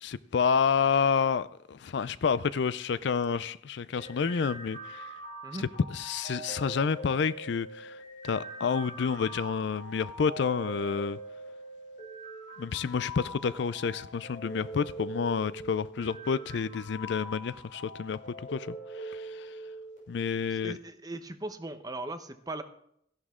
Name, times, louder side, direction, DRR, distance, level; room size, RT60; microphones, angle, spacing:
voice 1, 0.0-5.1 5.6-11.2 12.6-19.6 20.1-20.8, left 6 dB, 70° left, 0.4 m, -29 dB
sound 1, 4.0-20.0, right 1 dB, 50° left, 6.1 m, -43 dB
voice 2, 20.5-22.6, right 2 dB, 20° right, 0.8 m, -38 dB
14.0 x 11.0 x 3.7 m
head